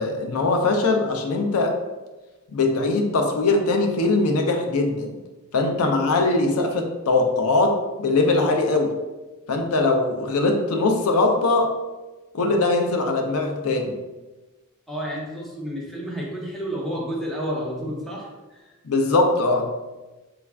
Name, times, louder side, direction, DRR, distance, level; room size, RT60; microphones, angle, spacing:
voice 1, 0.0-1.7 2.5-5.1 5.5-8.9 9.5-11.7 12.3-13.9 18.8-19.7, left 3 dB, 80° left, 4 dB, 0.5 m, -21 dB
voice 2, 14.9-18.7, equal, ahead, -4 dB, 0.6 m, -31 dB
3.4 x 2.4 x 3.3 m, 1.1 s
head